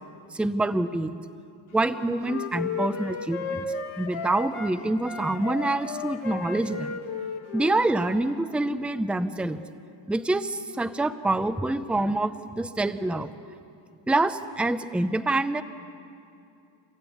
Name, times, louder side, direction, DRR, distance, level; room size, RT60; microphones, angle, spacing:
voice 1, 0.3-1.2 1.7-3.6 4.0-7.0 7.5-9.6 10.1-13.3 14.1-15.6, right 2 dB, ahead, 11 dB, 0.5 m, -26 dB
Wind instrument woodwind instrument, 1.8-4.7 5.0-8.4, left 4 dB, 80° left, 2.1 m, -34 dB
29.5 x 15.0 x 9.3 m, 2.6 s
wide cardioid pair, 170°, 49 cm